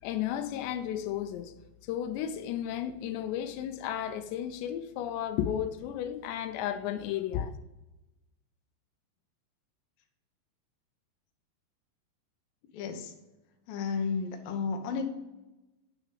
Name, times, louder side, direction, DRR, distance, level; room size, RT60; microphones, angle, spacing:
voice 1, 0.0-1.5 1.8-7.5, left 10 dB, 90° left, 2.9 m, -33 dB
voice 2, 12.7-13.1 13.7-15.1, left 5 dB, 70° left, 2.5 m, -32 dB
9.5 x 6.0 x 5.1 m
omnidirectional pair, 4.8 m